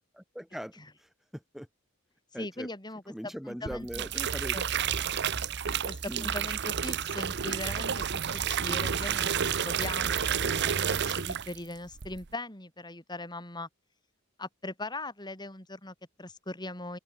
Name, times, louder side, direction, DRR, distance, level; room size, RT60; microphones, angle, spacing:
voice 1, 0.1-1.7 2.3-2.7 3.1-4.6 6.1-6.3, equal, ahead, 4.3 m, -41 dB
voice 2, 2.3-4.6 5.9-9.3 9.6-13.7 14.4-17.0, left 2 dB, 20° left, 6.2 m, -40 dB
sound 1, 3.7-11.7 12.0-12.3, right 8 dB, 55° right, 0.9 m, -30 dB
open air
head